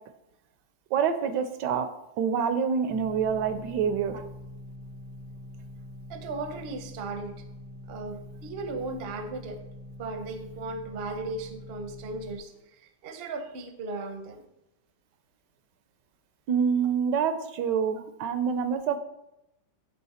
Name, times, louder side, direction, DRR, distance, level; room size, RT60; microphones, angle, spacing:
voice 1, 0.9-1.9 2.2-4.2 16.5-19.0, right 7 dB, 75° right, 10 dB, 1.2 m, -26 dB
sound 1, 2.9-12.4, left 1 dB, 65° left, 1.6 m, -44 dB
voice 2, 6.1-7.4 7.9-9.6 10.0-14.4 16.8-17.2 17.9-18.0, right 3 dB, 55° right, 7 dB, 0.7 m, -37 dB
9.3 x 3.4 x 4.2 m, 0.88 s
omnidirectional pair, 1.9 m